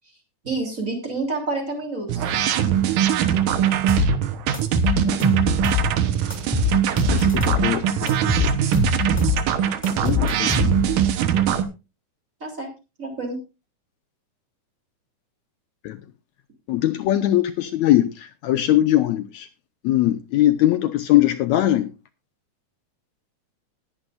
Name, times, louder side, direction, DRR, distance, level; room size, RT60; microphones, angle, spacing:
voice 1, 0.4-2.3 12.4-12.7 13.0-13.4, right 3 dB, 25° right, 3.6 m, -28 dB
sound 1, 2.1-11.6, right 9 dB, 85° right, 2.7 m, -21 dB
sound 2, 3.9-4.1 4.5-5.9 6.3-7.7 8.1-9.4 9.8-11.0, left 5 dB, 5° left, 2.4 m, -23 dB
voice 2, 7.1-8.5 10.0-10.7 15.8-16.0 16.7-19.5 19.8-21.9, left 13 dB, 75° left, 1.9 m, -21 dB
20.0 x 8.7 x 2.6 m
omnidirectional pair, 3.6 m